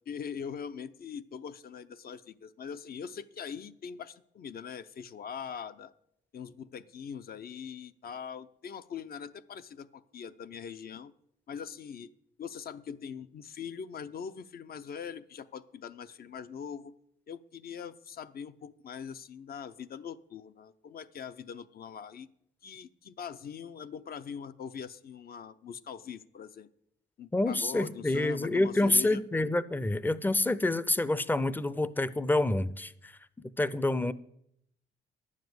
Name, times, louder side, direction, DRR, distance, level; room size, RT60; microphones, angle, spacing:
voice 1, 0.1-5.9 6.3-11.1 11.5-12.1 12.4-16.9 17.3-22.3 22.6-26.7 27.2-29.2, left 7 dB, 50° left, 0.6 m, -42 dB
voice 2, 27.3-33.1 33.6-34.1, left 2 dB, 10° left, 0.5 m, -27 dB
10.5 x 7.4 x 7.8 m
cardioid pair, 90°, 20 cm